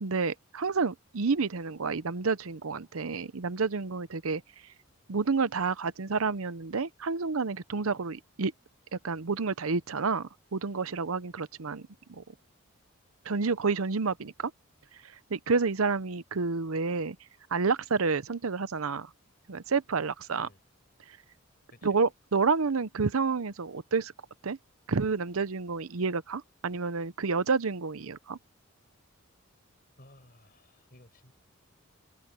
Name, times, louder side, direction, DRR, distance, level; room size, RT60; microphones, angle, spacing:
voice 1, 0.0-4.4 5.1-8.5 8.9-11.8 12.1-12.2 13.3-14.5 15.3-17.2 17.5-19.1 19.5-20.5 21.8-24.1 24.4-24.6 24.9-28.4, right 4 dB, 85° right, 0.8 m, -29 dB
voice 2, 30.0-31.3, left 1 dB, 45° left, 5.9 m, -56 dB
open air
head